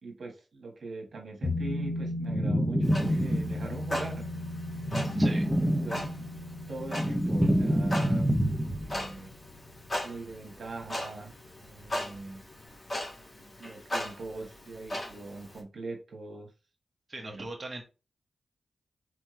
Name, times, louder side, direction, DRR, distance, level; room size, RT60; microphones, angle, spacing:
voice 1, 0.0-4.3 5.6-6.1 6.7-8.3 8.6-9.3 10.0-12.4 13.4-16.5 17.2-17.5, right 3 dB, 65° right, 1 dB, 1.6 m, -42 dB
sound 1, 1.4-10.5 10.8-10.9, left 1 dB, 45° left, 1.2 m, -37 dB
sound 2, 2.2-3.8 4.8-6.3 6.7-9.0, equal, 5° right, 0.7 m, -27 dB
Clock, 2.8-15.6, left 1 dB, 30° left, 2.1 m, -39 dB
voice 2, 5.2-5.5 17.1-17.8, right 2 dB, 30° right, 0 dB, 1.2 m, -39 dB
4.4 x 3.4 x 3.2 m, 0.30 s
cardioid pair, 60°, 0 cm